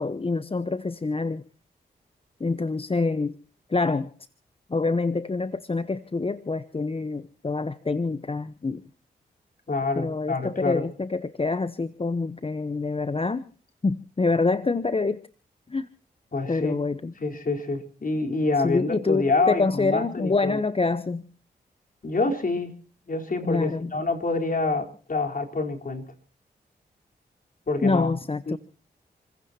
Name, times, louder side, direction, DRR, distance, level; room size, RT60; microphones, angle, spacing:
voice 1, 0.0-1.4 2.4-3.4 3.7-4.1 4.7-8.8 10.0-13.5 13.8-15.2 15.7-15.9 16.5-17.1 18.6-21.2 23.5-23.9 27.8-28.6, left 3 dB, 30° left, 0.9 m, -26 dB
voice 2, 9.7-10.9 16.3-16.8 17.2-20.6 22.0-22.7 23.0-26.1 27.7-28.2 28.5-28.6, left 3 dB, 50° left, 4.1 m, -27 dB
29.0 x 16.0 x 2.9 m
cardioid pair, 45°, 18 cm